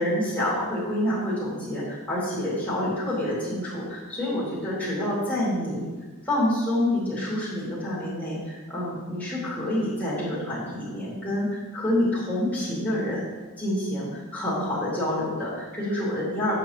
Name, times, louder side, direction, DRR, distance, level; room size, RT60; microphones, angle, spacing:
voice 1, 0.0-5.9 6.2-13.3 13.6-16.6, left 1 dB, 5° left, -10 dB, 2.7 m, -27 dB
9.0 x 6.6 x 3.1 m, 1.3 s
head